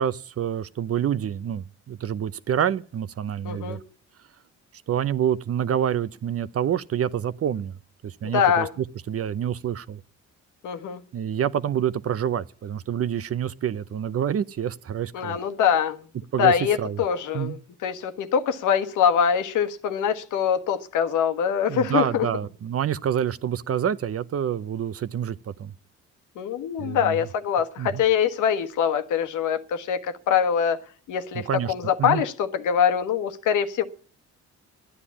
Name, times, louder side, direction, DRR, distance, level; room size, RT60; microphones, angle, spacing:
voice 1, 0.0-3.8 4.9-7.7 8.0-10.0 11.1-15.4 16.3-16.5 16.8-17.0 17.3-17.6 21.7-25.7 26.8-27.2 27.8-28.0 31.3-31.7 32.0-32.2, right 9 dB, 50° right, 0.8 m, -27 dB
voice 2, 3.4-3.8 8.2-8.7 10.6-11.0 15.1-16.0 16.4-22.3 26.4-30.8 31.1-33.8, left 8 dB, 85° left, 1.3 m, -24 dB
12.5 x 9.8 x 8.6 m
cardioid pair, 90°, 30 cm